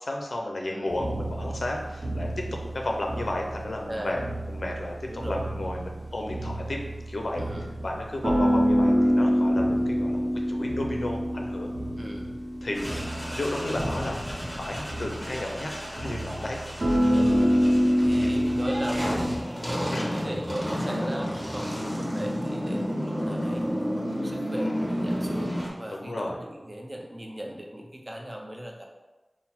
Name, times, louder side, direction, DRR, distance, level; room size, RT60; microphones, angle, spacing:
voice 1, 0.0-4.2 4.5-6.8 7.1-7.4 7.8-11.7 12.6-14.2 14.6-15.7 16.0-17.0 18.1-18.4 19.9-20.1 24.5-24.9 25.9-26.4, left 1 dB, 85° left, 1 dB, 0.5 m, -33 dB
sound 1, 0.9-19.4, equal, 75° right, 0.8 m, -27 dB
voice 2, 3.9-4.2 5.1-5.5 7.4-7.7 12.0-12.4 17.0-17.3 18.0-23.6 24.2-28.8, equal, 35° right, 0 dB, 0.6 m, -37 dB
sound 2, 12.7-25.7, equal, ahead, 1.0 m, -32 dB
3.9 x 2.1 x 4.1 m, 1.1 s
wide cardioid pair, 50°, 0 cm